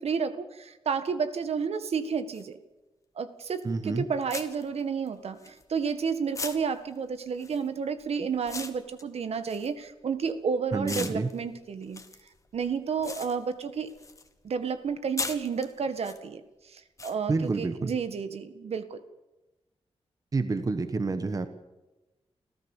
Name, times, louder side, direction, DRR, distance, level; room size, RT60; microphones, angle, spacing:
voice 1, 0.0-2.6 3.2-12.0 12.5-13.9 14.4-19.0, right 6 dB, 70° right, 10 dB, 1.7 m, -31 dB
sound 1, 2.3-2.4 3.6-3.8 4.3-6.0 6.3-10.4 10.8-14.3 14.6-16.2 17.0-17.1, left 3 dB, 30° left, 1.7 m, -39 dB
voice 2, 3.6-4.1 10.7-11.3 17.3-17.9 20.3-21.5, right 3 dB, 35° right, 9 dB, 1.2 m, -28 dB
27.5 x 15.5 x 7.2 m, 1.1 s
wide cardioid pair, 160°, 11 cm